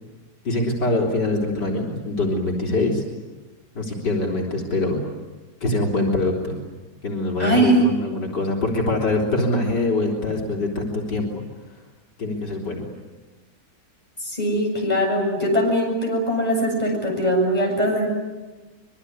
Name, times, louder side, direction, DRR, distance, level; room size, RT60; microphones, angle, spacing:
voice 1, 0.4-3.0 3.7-5.0 5.6-6.6 7.0-11.4 12.2-12.8, left 2 dB, 80° left, 0 dB, 4.4 m, -24 dB
voice 2, 7.4-7.9 14.2-18.1, right 1 dB, 20° left, 0 dB, 7.9 m, -21 dB
25.5 x 23.0 x 9.6 m, 1.2 s
omnidirectional pair, 1.8 m